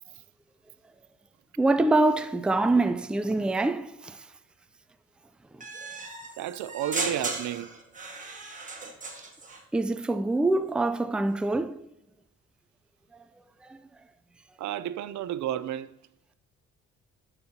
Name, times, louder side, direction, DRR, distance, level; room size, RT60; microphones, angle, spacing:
voice 1, 1.6-4.2 9.7-11.8 13.7-13.8, right 2 dB, 5° right, 0.4 m, -25 dB
sound 1, 5.6-9.6, right 3 dB, 25° right, 1.6 m, -36 dB
voice 2, 6.4-7.7 14.6-15.9, right 12 dB, 70° right, 0.5 m, -32 dB
11.0 x 5.5 x 2.8 m
cardioid pair, 90°, 30 cm